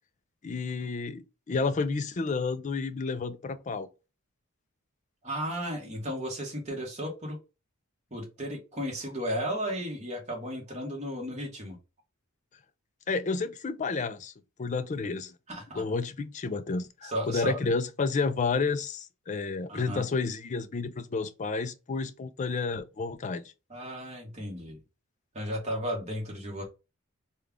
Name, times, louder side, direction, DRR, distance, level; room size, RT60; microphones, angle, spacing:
voice 1, 0.4-3.9 13.1-14.3 14.6-15.3 15.7-23.4, left 4 dB, 35° left, 0.4 m, -31 dB
voice 2, 5.2-7.4 8.1-11.8 15.5-15.8 17.0-17.6 19.7-20.0 23.7-24.8 25.3-26.6, equal, 30° right, 1.3 m, -34 dB
3.3 x 2.3 x 3.6 m
head